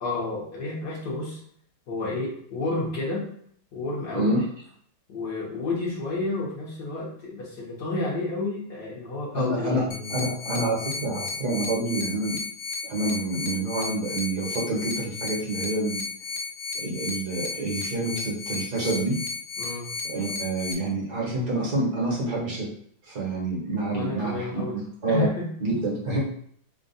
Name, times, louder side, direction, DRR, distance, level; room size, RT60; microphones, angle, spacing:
voice 1, 0.0-1.4 1.9-3.3 3.7-4.4 5.1-10.1 19.6-19.9 23.9-24.8 25.1-25.5, left 2 dB, 60° left, -4 dB, 1.5 m, -30 dB
voice 2, 4.1-4.4 9.3-9.8 10.1-12.4 12.8-16.1 16.7-19.2 20.0-22.7 23.0-25.3 25.6-26.2, right 2 dB, 55° right, -4 dB, 1.5 m, -27 dB
sound 1, 9.9-20.7, left 4 dB, 75° left, 1.2 m, -34 dB
3.8 x 2.4 x 3.9 m, 0.64 s
omnidirectional pair, 2.2 m